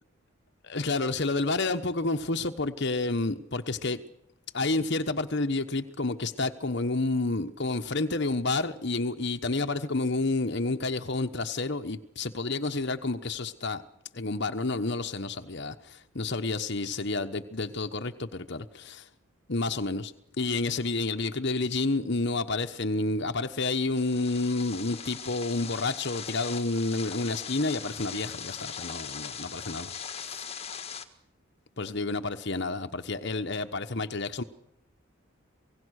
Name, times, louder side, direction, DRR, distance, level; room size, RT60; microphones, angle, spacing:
voice 1, 0.6-4.0 4.5-13.8 14.1-19.1 19.5-30.4 31.8-34.4, left 3 dB, 55° left, 8 dB, 1.2 m, -30 dB
sound 1, 24.0-31.0, left 7 dB, 30° left, 1.6 m, -40 dB
27.5 x 18.0 x 6.6 m, 0.79 s
head